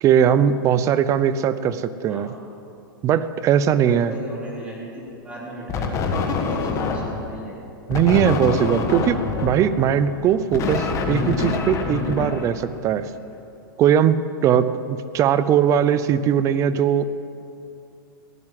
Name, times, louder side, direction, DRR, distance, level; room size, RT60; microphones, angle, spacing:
voice 1, 0.0-2.3 3.0-4.1 7.9-13.1 13.8-17.1, right 9 dB, 25° right, 14 dB, 0.6 m, -20 dB
voice 2, 2.1-2.4 3.8-7.6, equal, 10° right, -5 dB, 3.8 m, -37 dB
sound 1, 5.7-7.3 7.9-13.0, left 4 dB, 25° left, 1.7 m, -25 dB
16.0 x 11.0 x 7.6 m, 2.6 s
hypercardioid pair, 140°, 12 cm